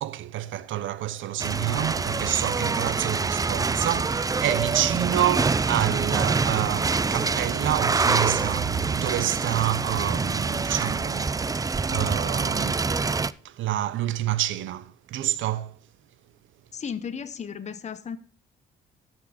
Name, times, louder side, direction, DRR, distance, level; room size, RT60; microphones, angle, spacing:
voice 1, 0.0-12.9 13.4-15.8, right 13 dB, 75° right, 0.8 m, -28 dB
sound 1, 1.4-13.3, right 4 dB, 20° right, 0.4 m, -26 dB
voice 2, 16.7-18.2, left 7 dB, 35° left, 0.9 m, -34 dB
13.5 x 6.3 x 5.0 m
cardioid pair, 90°, 20 cm